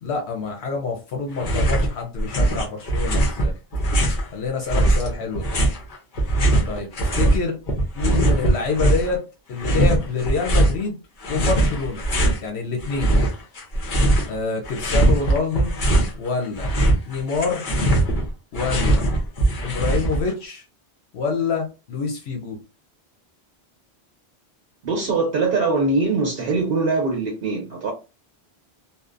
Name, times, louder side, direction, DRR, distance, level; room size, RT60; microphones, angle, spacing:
voice 1, 0.0-3.5 4.3-5.6 6.7-7.6 7.9-9.2 9.5-11.0 11.3-12.1 12.4-13.1 14.3-15.7 16.2-16.7 17.0-17.6 18.5-19.0 19.6-20.6 21.1-22.6, left 4 dB, 80° left, 0.9 m, -26 dB
sound 1, 1.4-1.9 2.2-4.3 4.7-7.4 7.7-9.1 9.6-10.8 11.2-12.4 12.8-14.3 14.6-16.1 16.4-20.3, right 1 dB, 50° left, 0.9 m, -20 dB
voice 2, 24.8-27.9, right 3 dB, 65° right, 0.9 m, -22 dB
2.7 x 2.0 x 2.4 m
omnidirectional pair, 1.1 m